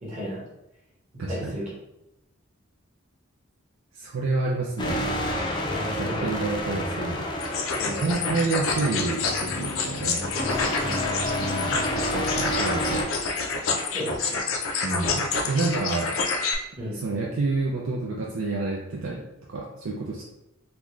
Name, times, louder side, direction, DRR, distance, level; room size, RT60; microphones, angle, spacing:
voice 1, 0.0-0.4 1.3-1.7 5.7-6.3 7.8-8.1 10.5-11.5 13.9-14.4 16.8-17.0, equal, 35° right, -5 dB, 1.2 m, -35 dB
voice 2, 1.2-1.6 3.9-5.1 6.0-7.3 7.9-10.3 11.4-13.1 14.8-16.1 16.8-20.3, right 3 dB, 85° right, -2 dB, 0.5 m, -29 dB
sound 1, 4.8-13.0, left 1 dB, 20° left, 0.4 m, -30 dB
sound 2, 7.4-16.5, left 4 dB, 80° left, 0.5 m, -28 dB
3.9 x 2.3 x 3.1 m, 0.89 s
head